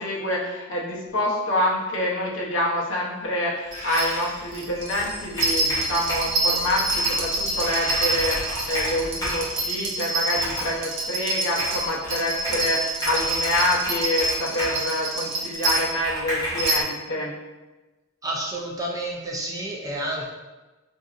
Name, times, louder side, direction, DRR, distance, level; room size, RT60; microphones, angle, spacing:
voice 1, 0.0-17.3, left 1 dB, 65° left, -4 dB, 0.7 m, -26 dB
Bird, 3.6-10.0, equal, 30° left, 0.9 m, -39 dB
sound 1, 3.7-16.0 16.6-16.8, right 2 dB, 60° right, 0.6 m, -27 dB
Computer keyboard, 4.9-6.4 6.9-7.2 7.6-7.7 7.9-9.5 10.3-10.8 11.6-12.7 13.0-14.8 15.6-16.8, equal, 15° left, 1.5 m, -31 dB
voice 2, 18.2-20.3, right 1 dB, 15° right, -2 dB, 0.4 m, -30 dB
4.0 x 2.6 x 2.4 m, 1.2 s
head